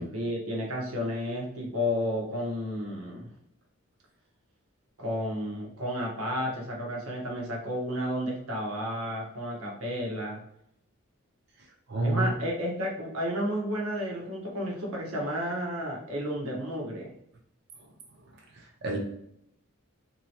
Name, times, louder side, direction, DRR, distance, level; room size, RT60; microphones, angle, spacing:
voice 1, 0.0-3.3 5.0-10.4 12.0-17.1 18.9-19.0, equal, 75° right, -1 dB, 1.2 m, -32 dB
voice 2, 11.9-12.3 18.5-19.0, right 2 dB, 50° right, 0 dB, 0.8 m, -29 dB
3.6 x 3.0 x 2.9 m, 0.72 s
head